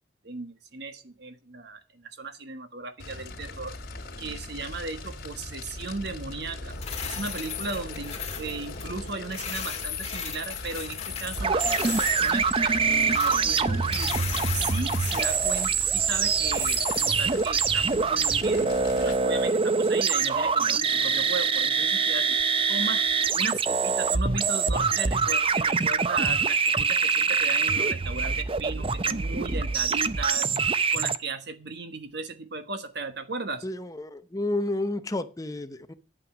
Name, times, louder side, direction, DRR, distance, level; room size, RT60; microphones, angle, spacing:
voice 1, 0.2-3.7 4.2-6.8 7.0-14.2 14.5-22.4 22.7-23.1 23.3-30.5 30.9-33.7, right 3 dB, 60° right, 9 dB, 1.4 m, -36 dB
Fire, 3.0-19.2, left 2 dB, 55° left, 2.8 m, -40 dB
sound 1, 6.7-19.6, left 8 dB, 35° left, 2.4 m, -37 dB
sound 2, 11.4-31.2, right 5 dB, 30° right, 0.6 m, -25 dB
voice 2, 33.6-35.9, left 2 dB, 20° left, 11 dB, 0.7 m, -31 dB
11.0 x 8.8 x 6.1 m, 0.33 s
head